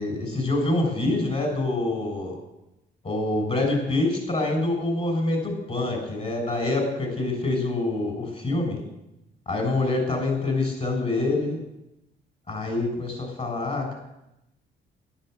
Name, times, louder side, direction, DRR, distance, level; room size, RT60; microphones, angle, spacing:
voice 1, 0.0-2.4 3.0-8.8 9.4-11.6 12.5-13.9, left 2 dB, 35° left, 3 dB, 6.7 m, -26 dB
13.0 x 11.5 x 8.0 m, 0.88 s
cardioid pair, 90°, 20 cm